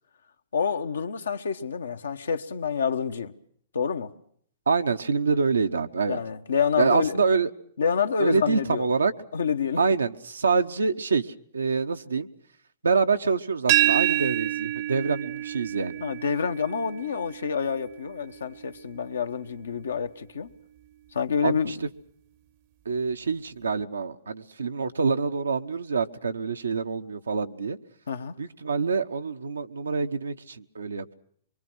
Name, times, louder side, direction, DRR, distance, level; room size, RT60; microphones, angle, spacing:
voice 1, 0.5-3.3 3.7-4.1 6.1-7.2 7.8-8.9 9.3-9.8 16.0-20.5 21.1-21.7 28.1-28.4, left 6 dB, 85° left, 1.1 m, -27 dB
voice 2, 4.7-6.2 6.8-7.5 8.2-9.1 9.8-12.3 12.8-16.0 21.4-21.9 22.8-27.8 28.4-31.1, right 5 dB, 90° right, 1.0 m, -26 dB
sound 1, 13.7-19.4, right 14 dB, 50° right, 0.8 m, -28 dB
23.5 x 23.5 x 6.2 m
hypercardioid pair, 120°, 0 cm